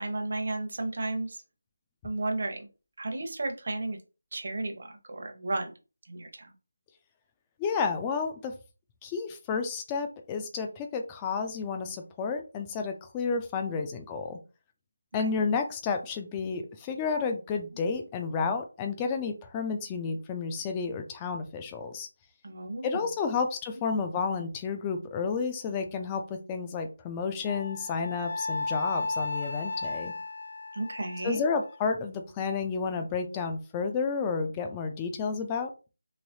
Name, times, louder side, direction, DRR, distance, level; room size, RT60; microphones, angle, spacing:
voice 1, 0.0-1.4 2.0-2.7 3.0-4.0 4.3-5.7 6.1-6.5 13.7-13.8 22.4-23.0 30.7-31.4, right 2 dB, 55° right, 5 dB, 0.8 m, -33 dB
voice 2, 7.6-8.5 9.0-14.4 15.1-22.1 22.8-30.1 31.2-35.7, left 5 dB, 15° left, 6 dB, 0.4 m, -31 dB
Wind instrument woodwind instrument, 27.4-31.8, left 3 dB, 85° left, 0.4 m, -34 dB
3.2 x 2.9 x 2.7 m, 0.32 s
figure-of-eight pair, 170°, 0 cm